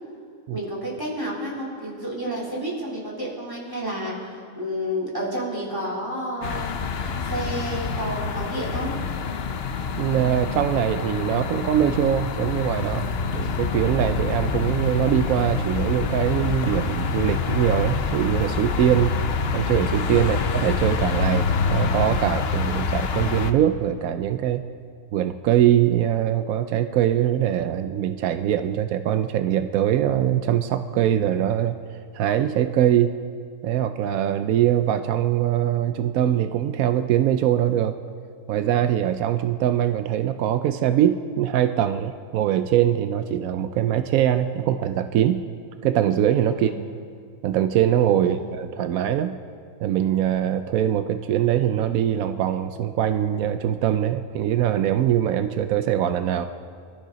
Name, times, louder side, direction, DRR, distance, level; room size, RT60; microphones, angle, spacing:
voice 1, 0.5-6.9 7.2-8.9 20.2-20.3 46.5-46.8 48.2-48.4, equal, 15° right, -4 dB, 3.5 m, -30 dB
sound 1, 6.4-23.5, left 5 dB, 55° left, 0.9 m, -26 dB
voice 2, 10.0-13.0 13.3-19.1 19.5-24.6 25.1-31.8 32.1-33.2 33.6-37.9 38.5-45.4 45.8-46.7 47.4-49.4 49.8-56.4, right 11 dB, 85° right, 10 dB, 1.0 m, -22 dB
24.0 x 13.0 x 4.0 m, 2.2 s
omnidirectional pair, 1.4 m